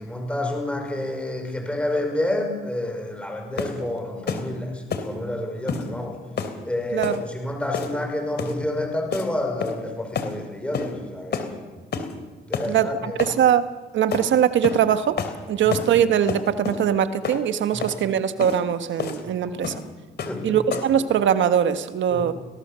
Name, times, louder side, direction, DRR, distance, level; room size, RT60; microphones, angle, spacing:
voice 1, 0.0-6.2 6.6-11.6 12.5-13.3 15.6-15.8 17.7-17.9 20.3-20.6 22.1-22.2, left 1 dB, 5° left, 2 dB, 5.8 m, -29 dB
sound 1, 3.6-3.8 4.3-4.5 4.9-5.1 5.7-5.9 6.4-6.6 7.0-7.2 7.7-8.0 8.4-8.6 9.1-9.3 9.6-9.9 10.1-10.3 10.7-10.9 11.3-11.5 11.9-12.1 12.5-12.7 13.2-13.4 14.1-14.3 14.6-14.8 15.2-15.4 15.7-15.9 16.3-16.8 17.2-17.4 17.8-18.0 18.4-18.6 19.0-19.2 19.6-19.8 20.2-20.4 20.7-21.0, left 6 dB, 55° left, 3.0 m, -29 dB
voice 2, 12.6-13.1 13.4-13.6 13.9-15.2 15.5-19.7 20.4-22.3, right 9 dB, 70° right, 10 dB, 1.5 m, -21 dB
23.0 x 18.0 x 7.0 m, 1.3 s
cardioid pair, 90°, 20 cm